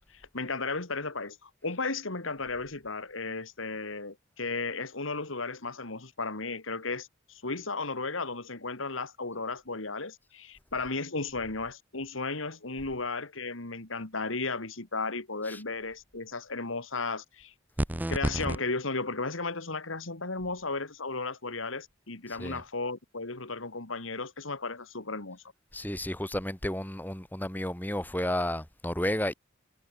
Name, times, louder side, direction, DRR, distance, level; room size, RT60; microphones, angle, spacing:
voice 1, 0.1-17.5 18.1-25.4, left 3 dB, 85° left, 2.6 m, -35 dB
sound 1, 17.8-18.6, right 1 dB, 10° right, 0.7 m, -29 dB
voice 2, 22.3-22.6 25.7-29.3, left 1 dB, 10° left, 1.8 m, -32 dB
head